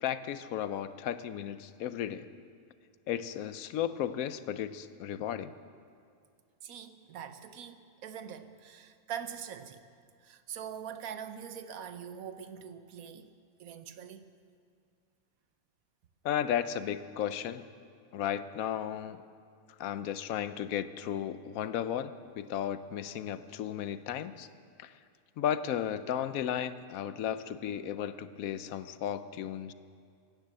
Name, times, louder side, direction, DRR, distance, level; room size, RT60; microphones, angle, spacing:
voice 1, 0.0-2.3 3.1-5.5 16.2-17.6 18.1-19.2 19.8-24.5 24.8-24.9 25.4-29.7, left 10 dB, 80° left, 13 dB, 1.1 m, -34 dB
voice 2, 6.6-9.8 10.2-13.3 13.6-14.3, right 8 dB, 85° right, 10 dB, 1.3 m, -43 dB
16.5 x 11.0 x 7.6 m, 2.2 s
omnidirectional pair, 1.5 m